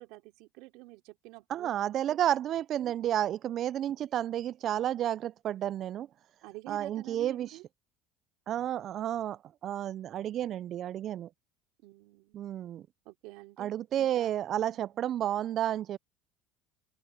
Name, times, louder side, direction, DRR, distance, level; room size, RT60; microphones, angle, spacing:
voice 1, 0.0-1.7 2.1-2.2 2.7-3.1 6.4-7.6 11.8-12.4 13.0-13.7 14.0-14.3 14.7-14.9, right 21 dB, 75° right, 3.0 m, -49 dB
voice 2, 1.5-6.1 6.7-7.5 8.5-11.3 12.3-12.8 13.6-16.0, right 11 dB, 50° right, 0.3 m, -31 dB
open air
supercardioid pair, 110°, 0 cm